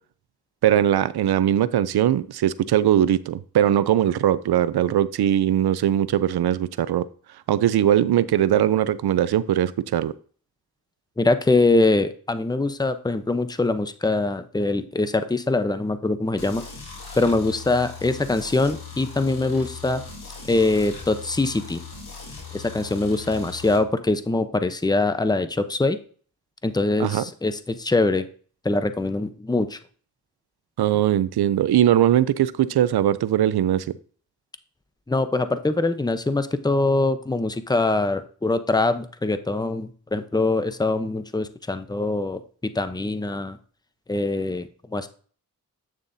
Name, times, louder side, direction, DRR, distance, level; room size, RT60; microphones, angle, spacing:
voice 1, 0.6-7.0 7.5-10.1 27.0-27.2 30.8-33.9, right 11 dB, 90° right, 16 dB, 0.6 m, -20 dB
voice 2, 11.2-16.6 17.2-20.0 20.5-21.8 22.5-26.0 26.6-28.2 28.6-29.8 35.1-43.6 44.1-45.1, left 2 dB, 10° left, 10 dB, 0.8 m, -23 dB
sound 1, 16.4-23.8, left 5 dB, 80° left, 3.4 m, -39 dB
9.1 x 6.9 x 2.7 m, 0.43 s
cardioid pair, 55°, 37 cm